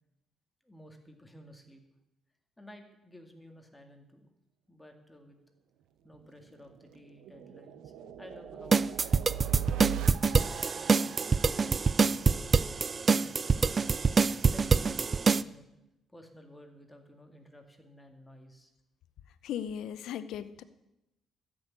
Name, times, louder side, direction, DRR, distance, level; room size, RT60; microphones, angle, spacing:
voice 1, 0.6-1.8 2.6-4.3 4.7-5.4 6.0-10.0 10.7-12.5 13.0-15.7 16.1-18.7, left 1 dB, 10° left, 4 dB, 2.0 m, -53 dB
sound 1, 6.1-12.9, right 11 dB, 85° right, 0.9 m, -41 dB
sound 2, 8.7-15.4, right 5 dB, 35° right, 0.4 m, -25 dB
voice 2, 19.4-20.6, left 9 dB, 80° left, 13 dB, 0.7 m, -37 dB
13.5 x 6.3 x 9.6 m, 0.90 s
cardioid pair, 90°, 0 cm